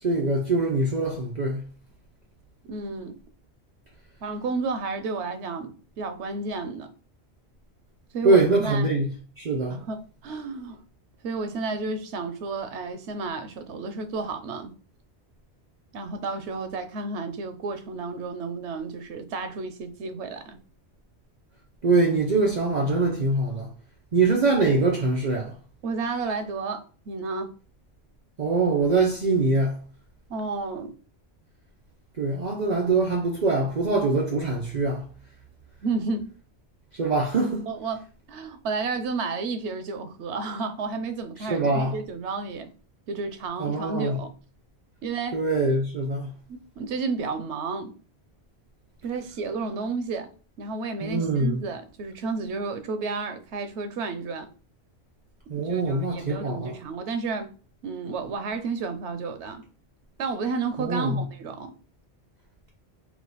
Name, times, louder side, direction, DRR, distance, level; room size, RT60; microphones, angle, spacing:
voice 1, 0.0-1.6 8.2-9.8 21.8-23.7 24.1-25.5 28.4-29.8 32.2-35.1 36.9-37.7 41.4-42.0 43.6-44.2 45.3-46.3 51.0-51.6 55.5-56.8 60.8-61.2, right 3 dB, 50° right, 0.7 m, -23 dB
voice 2, 2.7-3.2 4.2-6.9 8.1-8.9 9.7-10.8 11.2-14.7 15.9-20.6 25.8-27.5 30.3-31.0 35.8-36.3 37.7-38.0 38.3-42.7 43.1-44.3 45.0-45.4 46.5-47.9 49.0-50.3 50.6-54.5 55.5-57.5 57.8-59.6 60.2-61.7, right 4 dB, 90° right, 0.9 m, -31 dB
4.7 x 2.3 x 3.9 m
omnidirectional pair, 1.1 m